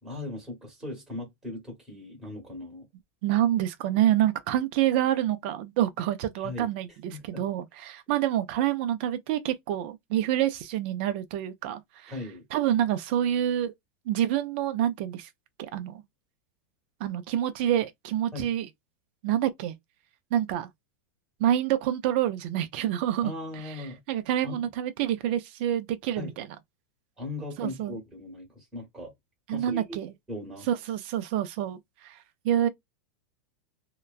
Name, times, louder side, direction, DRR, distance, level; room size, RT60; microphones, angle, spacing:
voice 1, 0.0-2.9 6.4-6.7 7.1-7.4 12.1-12.4 18.3-18.5 23.2-24.0 24.4-24.7 26.2-26.4 27.2-29.1 29.5-30.0 30.3-30.7, left 2 dB, 5° right, 1.2 m, -38 dB
voice 2, 3.2-12.1 12.5-13.7 14.1-15.3 15.6-16.0 17.0-18.7 19.2-19.7 20.3-20.7 21.4-23.3 23.6-23.7 24.1-26.5 27.6-28.0 29.5-30.1 30.7-31.8 32.0-32.1 32.4-32.7, right 11 dB, 45° right, 0.5 m, -27 dB
2.9 x 2.2 x 2.4 m
supercardioid pair, 170°, 8 cm